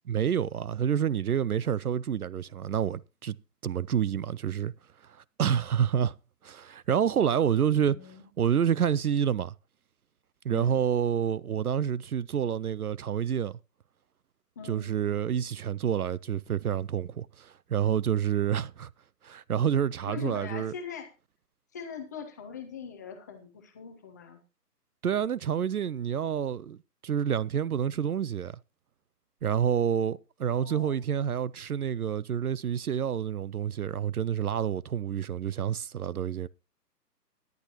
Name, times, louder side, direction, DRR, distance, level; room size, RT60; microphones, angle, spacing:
voice 1, 0.1-3.4 3.6-4.7 5.4-6.2 6.4-8.0 8.4-9.5 10.4-13.6 14.7-18.9 19.2-20.7 25.0-26.8 27.0-28.6 29.4-36.5, right 8 dB, 65° right, 0.6 m, -28 dB
voice 2, 7.7-8.3 10.5-10.8 14.6-14.9 20.1-21.1 21.7-24.4 30.6-31.0, left 6 dB, 10° left, 0.7 m, -41 dB
17.5 x 10.5 x 2.9 m
figure-of-eight pair, 145°, 49 cm